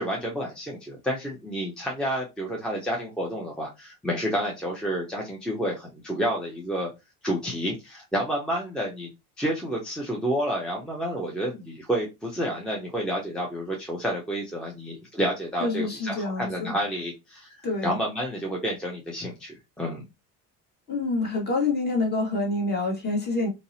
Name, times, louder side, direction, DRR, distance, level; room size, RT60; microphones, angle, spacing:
voice 1, 0.0-6.9 7.2-9.1 9.4-20.1, equal, ahead, 0.5 m, -30 dB
voice 2, 15.6-16.7 17.6-18.0 20.9-23.5, left 3 dB, 25° left, 1.0 m, -27 dB
2.6 x 2.0 x 2.6 m
supercardioid pair, 100°, 36 cm